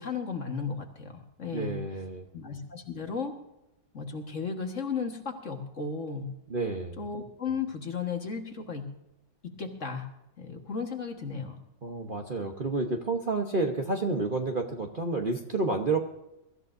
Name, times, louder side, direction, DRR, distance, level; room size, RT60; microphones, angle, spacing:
voice 1, 0.0-1.8 2.3-3.4 3.9-6.3 7.0-8.9 9.4-10.1 10.4-11.6, left 5 dB, 45° left, 4 dB, 1.8 m, -35 dB
voice 2, 1.5-2.3 6.5-7.0 11.8-16.0, right 3 dB, 35° right, 3 dB, 1.0 m, -30 dB
23.5 x 14.0 x 2.6 m, 0.89 s
omnidirectional pair, 1.9 m